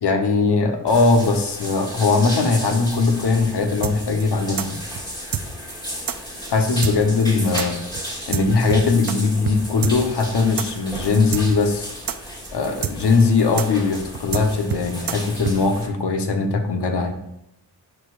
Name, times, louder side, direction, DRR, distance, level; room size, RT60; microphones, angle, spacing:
voice 1, 0.0-4.8 6.5-7.8 8.3-11.9 12.5-17.1, left 4 dB, 60° left, 5 dB, 1.2 m, -20 dB
sound 1, 0.9-15.9, equal, 10° left, 2.2 m, -34 dB
sound 2, 3.8-9.2 9.4-9.6 9.8-15.6, right 8 dB, 50° right, 0.6 m, -27 dB
10.5 x 4.9 x 2.6 m, 0.83 s
cardioid pair, 65°, 44 cm